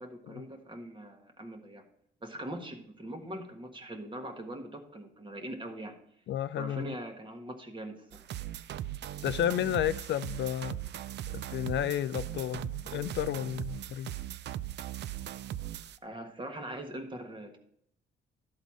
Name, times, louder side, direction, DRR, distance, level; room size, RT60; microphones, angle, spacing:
voice 1, 0.0-1.8 2.2-6.0 6.5-8.3 16.0-17.6, right 1 dB, 25° right, 1.6 m, -42 dB
voice 2, 6.3-6.9 9.2-10.8 11.3-14.1, left 11 dB, 65° left, 0.4 m, -32 dB
sound 1, 8.1-16.0, right 12 dB, 60° right, 0.4 m, -39 dB
12.0 x 4.0 x 6.1 m
cardioid pair, 90°, 20 cm